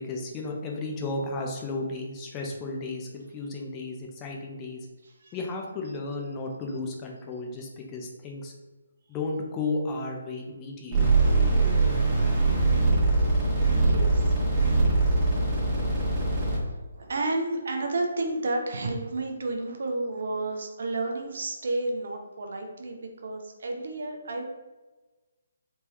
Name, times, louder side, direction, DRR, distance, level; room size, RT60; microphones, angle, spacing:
voice 1, 0.0-4.9 5.3-8.5 9.1-11.2, left 3 dB, 20° left, 0 dB, 0.6 m, -34 dB
sound 1, 10.9-16.6, right 3 dB, 20° right, 1.4 m, -22 dB
voice 2, 13.7-14.2 16.5-24.5, right 2 dB, 55° right, 3 dB, 0.6 m, -31 dB
3.4 x 3.0 x 3.0 m, 1.2 s
figure-of-eight pair, 140°, 0 cm